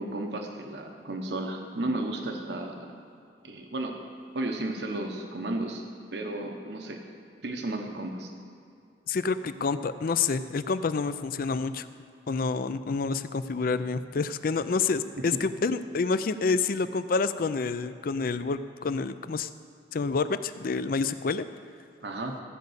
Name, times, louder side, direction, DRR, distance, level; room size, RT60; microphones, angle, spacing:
voice 1, 0.0-2.9 3.4-4.0 4.3-5.8 6.1-7.0 7.4-8.3 15.2-15.4 22.0-22.4, right 2 dB, 75° right, 3 dB, 1.0 m, -33 dB
voice 2, 9.1-11.9 12.3-19.5 19.9-21.5, left 4 dB, 55° left, 12 dB, 0.4 m, -28 dB
14.5 x 5.3 x 8.0 m, 2.5 s
head